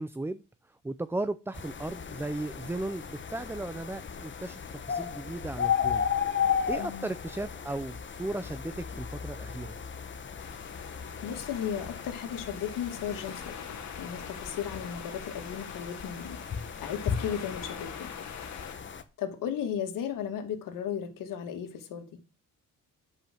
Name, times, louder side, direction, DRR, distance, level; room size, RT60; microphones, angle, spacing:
voice 1, 0.0-6.1 6.4-9.8, right 2 dB, 5° right, 0.5 m, -36 dB
sound 1, 1.5-19.0, left 7 dB, 35° left, 1.3 m, -35 dB
voice 2, 6.8-7.1 11.2-16.4 16.8-18.1 19.2-22.2, left 8 dB, 80° left, 2.4 m, -35 dB
sound 2, 10.4-18.8, left 7 dB, 60° left, 2.3 m, -45 dB
10.0 x 5.5 x 7.8 m
cardioid pair, 105°, 32 cm